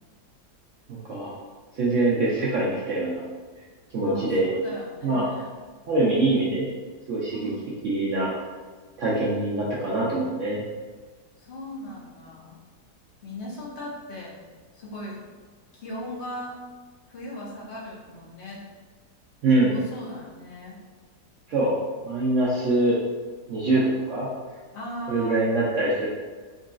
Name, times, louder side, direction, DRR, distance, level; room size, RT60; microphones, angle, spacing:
voice 1, 0.9-1.4 1.7-3.2 3.9-4.5 5.0-5.2 5.9-6.7 7.1-7.5 7.8-8.3 9.0-10.6 19.4-19.8 21.5-21.7 22.0-23.0 23.5-24.3 25.1-26.1, right 2 dB, 70° right, -6 dB, 0.7 m, -24 dB
voice 2, 4.0-5.5 7.3-7.7 11.4-12.6 13.2-14.4 14.7-15.2 15.7-16.6 17.1-18.7 19.6-20.8 24.7-25.4, left 1 dB, 55° left, -5 dB, 0.8 m, -38 dB
3.8 x 2.3 x 2.4 m, 1.4 s
omnidirectional pair, 1.7 m